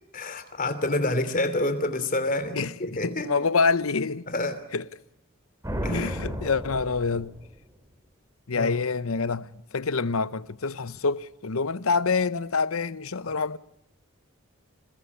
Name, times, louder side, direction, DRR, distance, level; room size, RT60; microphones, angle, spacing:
voice 1, 0.1-3.3 4.3-4.6 5.8-6.3 8.5-8.7 13.3-13.4, left 2 dB, 40° left, 3.1 m, -28 dB
voice 2, 2.5-4.2 4.7-4.8 5.9-7.3 8.5-13.6, left 4 dB, 80° left, 0.9 m, -26 dB
sound 1, 5.6-7.8, equal, 15° right, 3.0 m, -33 dB
27.5 x 20.5 x 9.8 m
head